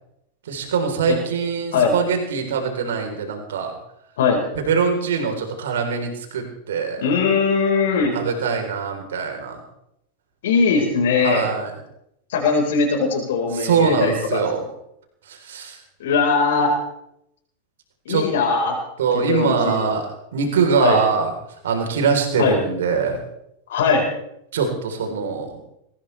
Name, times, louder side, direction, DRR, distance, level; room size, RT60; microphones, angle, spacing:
voice 1, 0.5-3.7 4.6-7.0 8.1-9.6 11.2-11.7 13.5-14.7 15.3-15.8 18.1-18.3 19.0-20.0 20.3-21.3 21.6-23.2 24.5-25.5, right 6 dB, 60° right, 4 dB, 3.9 m, -22 dB
voice 2, 7.0-8.2 10.4-11.5 12.3-14.4 16.0-16.8 18.0-18.8 19.1-19.9 20.8-21.0 22.4-22.6 23.7-24.1, left 5 dB, 60° left, 0 dB, 4.6 m, -20 dB
22.0 x 19.5 x 3.4 m, 0.79 s
figure-of-eight pair, 90°, 0 cm